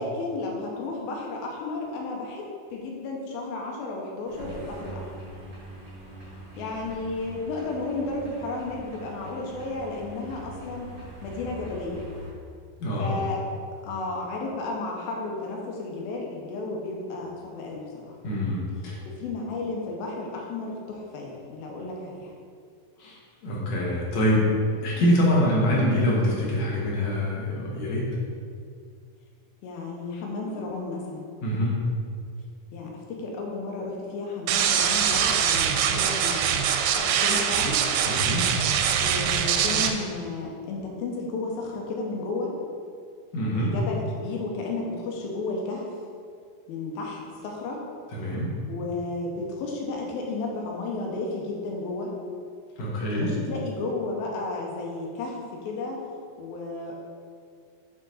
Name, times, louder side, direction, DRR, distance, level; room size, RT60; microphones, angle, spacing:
voice 1, 0.0-2.5 2.7-5.1 6.6-10.9 11.2-12.1 13.0-13.4 13.8-18.2 19.1-22.3 29.6-31.2 32.7-36.4 37.0-37.8 39.0-42.5 43.5-45.9 46.7-47.8 48.7-52.1 53.1-56.0 56.4-57.0, left 3 dB, 80° left, -1 dB, 2.7 m, -33 dB
sound 1, 4.3-12.3, right 1 dB, 60° right, 0.8 m, -43 dB
voice 2, 12.8-13.2 18.2-19.0 23.0-24.5 24.8-28.1 31.4-31.8 38.0-38.5 43.3-43.7 48.1-48.5 52.8-53.3, left 1 dB, 60° left, -5 dB, 2.1 m, -25 dB
sound 2, 34.5-39.9, right 8 dB, 90° right, 2.5 m, -23 dB
8.8 x 3.9 x 4.0 m, 2.2 s
omnidirectional pair, 4.4 m